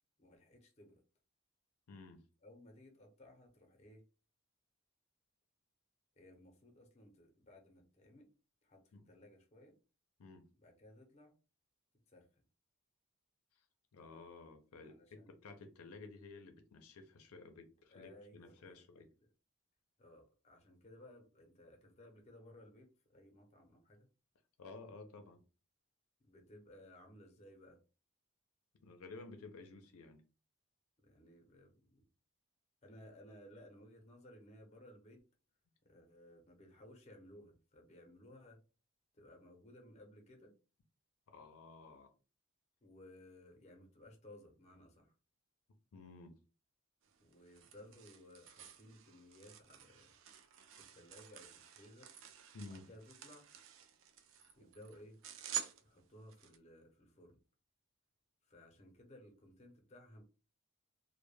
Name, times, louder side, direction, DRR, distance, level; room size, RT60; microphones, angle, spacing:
voice 1, 0.2-1.0 2.4-4.0 6.2-8.3 8.6-9.7 10.6-11.3 12.1-12.4 14.8-15.3 17.9-19.1 20.0-24.1 26.2-27.8 31.0-32.0 32.8-35.2 35.8-38.6 39.1-40.5 42.8-45.1 47.2-50.2 50.7-52.1 52.7-53.5 54.6-55.2 55.8-57.4 58.4-60.2, left 1 dB, 30° left, 0.6 m, -59 dB
voice 2, 1.9-2.2 8.9-9.1 10.2-10.5 13.5-13.6 13.9-19.1 24.6-25.4 28.8-30.2 41.3-42.1 45.9-46.4 52.5-52.9, left 3 dB, 80° left, 0.5 m, -53 dB
sound 1, 47.0-56.6, right 10 dB, 60° right, 0.3 m, -49 dB
2.1 x 2.1 x 3.1 m
head